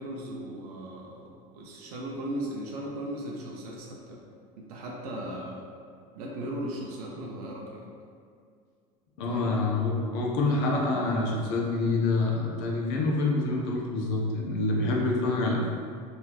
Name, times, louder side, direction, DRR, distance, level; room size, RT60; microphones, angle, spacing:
voice 1, 0.0-4.2 4.6-5.6 6.2-7.9 9.3-9.5 14.8-15.2, right 1 dB, 80° right, -2 dB, 0.5 m, -37 dB
voice 2, 9.2-15.7, left 2 dB, 65° left, -1 dB, 0.6 m, -27 dB
3.1 x 2.4 x 2.4 m, 2.2 s
hypercardioid pair, 80°, 19 cm